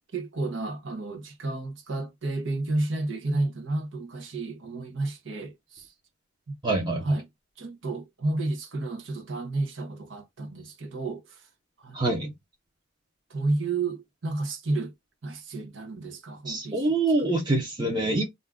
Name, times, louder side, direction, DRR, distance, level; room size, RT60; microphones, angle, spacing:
voice 1, 0.1-5.9 6.5-6.6 7.0-7.3 7.6-11.4 11.8-12.0 13.3-14.9 15.2-17.4, right 2 dB, 75° right, 0.8 m, -31 dB
voice 2, 6.6-7.0 11.9-12.3 16.5-18.2, right 2 dB, 20° right, 0.8 m, -25 dB
2.6 x 2.3 x 3.5 m
head